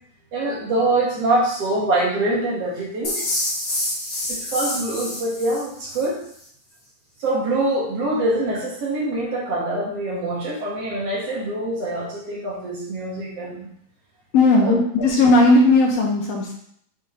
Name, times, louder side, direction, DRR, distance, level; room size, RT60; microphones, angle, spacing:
voice 1, 0.3-3.2 4.3-6.2 7.2-13.7 14.6-14.8, right 2 dB, 60° right, -4 dB, 2.6 m, -24 dB
sound 1, 3.0-6.1, left 1 dB, 40° left, 1.6 m, -27 dB
voice 2, 14.3-16.5, left 2 dB, 65° left, -2 dB, 2.1 m, -16 dB
6.7 x 3.8 x 3.8 m, 0.65 s
omnidirectional pair, 3.4 m